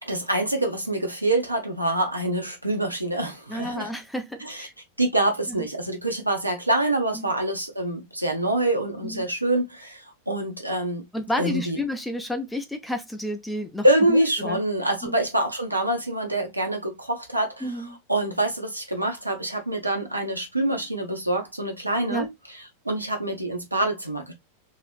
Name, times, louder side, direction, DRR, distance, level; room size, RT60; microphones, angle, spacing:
voice 1, 0.0-3.9 4.4-4.7 5.0-11.1 11.4-11.8 13.8-22.3 22.8-24.3, right 1 dB, 85° right, 1.1 m, -25 dB
voice 2, 3.5-4.7 5.5-5.7 7.1-7.3 9.0-9.2 11.1-14.6 15.0-15.2 17.6-18.0 22.1-22.3, left 1 dB, 5° left, 0.8 m, -31 dB
3.9 x 3.0 x 2.5 m
figure-of-eight pair, 90°, 0 cm